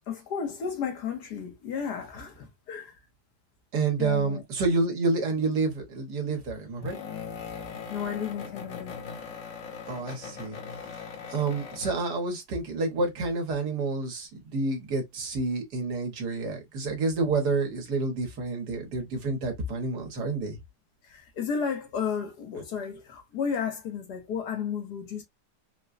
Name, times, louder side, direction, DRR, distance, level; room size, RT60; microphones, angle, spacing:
voice 1, 0.1-2.9 4.0-4.4 7.9-9.0 21.1-25.2, left 6 dB, 70° left, 1.6 m, -33 dB
voice 2, 3.7-6.9 9.9-10.6 11.3-20.6, right 3 dB, 70° right, 1.7 m, -29 dB
sound 1, 5.4-5.7 6.8-12.1, left 6 dB, 55° left, 1.1 m, -40 dB
4.3 x 2.2 x 2.4 m
omnidirectional pair, 1.8 m